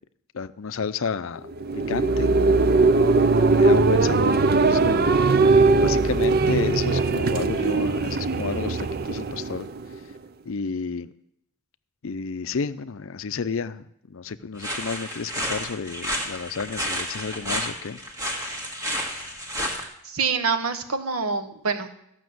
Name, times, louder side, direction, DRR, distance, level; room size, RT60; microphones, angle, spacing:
voice 1, 0.3-1.4 1.9-2.4 3.4-5.2 5.8-9.7 10.4-11.1 12.0-18.0, left 5 dB, 60° left, 15 dB, 0.5 m, -31 dB
sound 1, 1.5-10.1, right 3 dB, 45° right, 0.5 m, -20 dB
sound 2, 14.6-19.8, equal, 15° right, 1.7 m, -31 dB
voice 2, 19.7-21.9, right 5 dB, 75° right, 7 dB, 1.1 m, -26 dB
14.5 x 6.0 x 7.8 m, 0.78 s
head